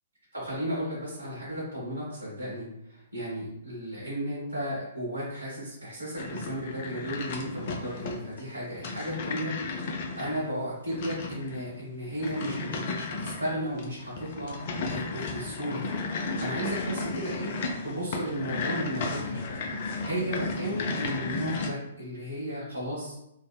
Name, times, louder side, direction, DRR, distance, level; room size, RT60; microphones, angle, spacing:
voice 1, 0.3-17.5 17.8-23.2, equal, 85° right, -9 dB, 1.0 m, -34 dB
sound 1, 6.2-21.7, left 3 dB, 45° left, 0.4 m, -34 dB
3.3 x 2.0 x 2.2 m, 0.82 s
figure-of-eight pair, 115°, 0 cm